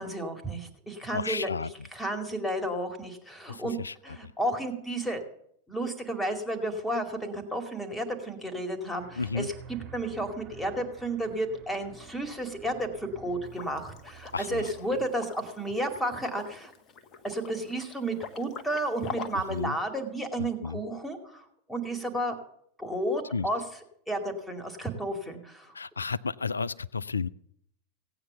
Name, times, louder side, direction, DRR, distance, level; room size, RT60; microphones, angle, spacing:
voice 1, 0.0-1.5 1.9-3.7 4.0-5.2 5.7-16.7 17.2-22.3 22.8-23.6 24.1-25.7, right 1 dB, 5° left, 5 dB, 2.5 m, -32 dB
voice 2, 1.1-1.7 3.5-4.3 9.2-9.5 14.3-14.7 19.3-19.8 20.4-20.8 23.3-23.5 25.7-27.3, left 4 dB, 75° left, 21 dB, 0.5 m, -33 dB
sound 1, 8.9-15.0, right 7 dB, 35° right, 3.3 m, -50 dB
Liquid, 13.5-19.6, left 6 dB, 30° left, 1.3 m, -44 dB
17.0 x 8.9 x 7.0 m, 0.70 s
figure-of-eight pair, 90°, 0 cm